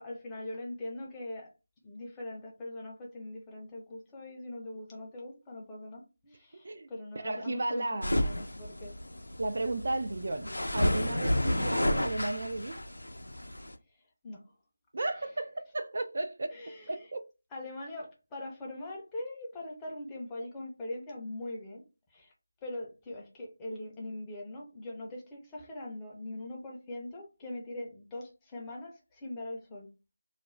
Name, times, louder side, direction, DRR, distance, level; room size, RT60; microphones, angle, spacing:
voice 1, 0.0-1.5 1.8-9.0 11.4-11.6 13.9-14.4 15.2-15.3 16.5-17.1 17.5-21.8 22.1-22.3 22.6-29.9, left 1 dB, 10° left, 0.6 m, -42 dB
voice 2, 7.2-8.2 9.4-12.8 14.9-16.5 16.9-17.2, right 2 dB, 55° right, 0.3 m, -34 dB
sound 1, 8.0-13.7, left 1 dB, 85° left, 0.5 m, -31 dB
2.4 x 2.1 x 3.0 m
figure-of-eight pair, 165°, 0 cm